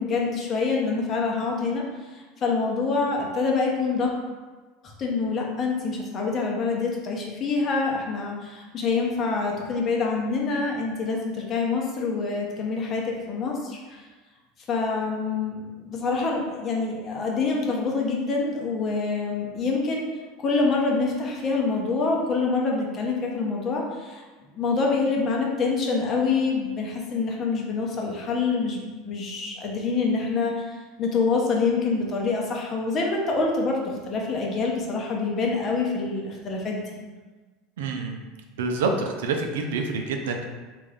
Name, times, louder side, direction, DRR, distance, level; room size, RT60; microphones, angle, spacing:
voice 1, 0.0-1.8 2.1-4.1 4.8-14.1 14.7-20.1 20.4-24.2 24.5-30.6 31.0-36.8, left 4 dB, 40° left, -1 dB, 0.8 m, -26 dB
voice 2, 37.8-38.2 38.6-40.5, right 4 dB, 75° right, 3 dB, 0.4 m, -27 dB
3.5 x 2.5 x 3.4 m, 1.3 s
hypercardioid pair, 80°, 0 cm